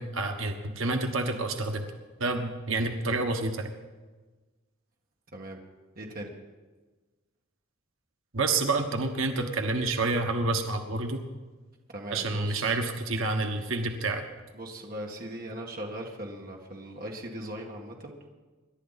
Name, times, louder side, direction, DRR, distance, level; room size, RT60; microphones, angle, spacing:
voice 1, 0.0-1.8 2.2-3.7 8.3-11.2 12.1-14.2, right 3 dB, 75° right, 4 dB, 1.4 m, -28 dB
voice 2, 6.0-6.3 11.9-12.8 14.5-18.1, right 1 dB, 45° right, 0 dB, 2.0 m, -39 dB
26.5 x 11.5 x 4.2 m, 1.3 s
head